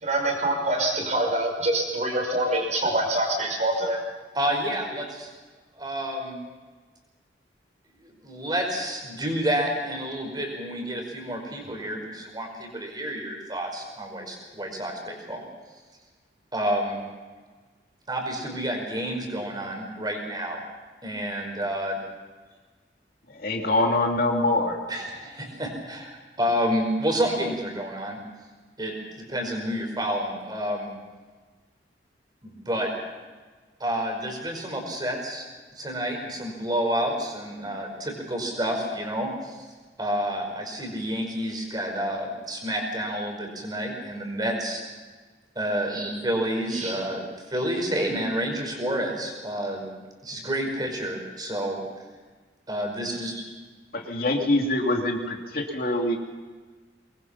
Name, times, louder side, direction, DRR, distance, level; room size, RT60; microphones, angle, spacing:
voice 1, 0.0-4.0 46.7-47.0, right 1 dB, 40° right, 2 dB, 5.6 m, -25 dB
voice 2, 4.3-5.3 5.8-6.4 8.0-15.4 16.5-17.0 18.1-20.6 21.0-22.0 24.9-28.2 28.8-30.9 32.4-32.9 33.8-35.4 35.8-39.7 40.0-44.8 45.6-47.2 47.5-49.9 50.2-51.8 52.7-53.4, equal, 25° right, 2 dB, 5.3 m, -29 dB
voice 3, 23.4-24.8 53.9-56.2, left 2 dB, 55° left, 2 dB, 2.6 m, -24 dB
24.0 x 21.5 x 5.8 m, 1.4 s
head